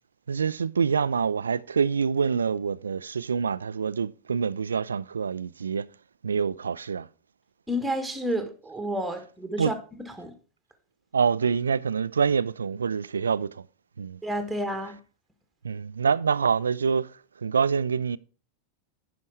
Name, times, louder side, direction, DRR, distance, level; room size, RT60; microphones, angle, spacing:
voice 1, 0.3-5.9 6.2-7.1 9.6-9.7 11.1-13.6 14.0-14.2 15.6-17.1 17.4-18.2, right 6 dB, 70° right, 0.3 m, -26 dB
voice 2, 7.7-9.7 10.2-10.3 14.2-15.0, equal, 5° right, 1.5 m, -30 dB
10.5 x 5.3 x 4.6 m
figure-of-eight pair, 90°, 0 cm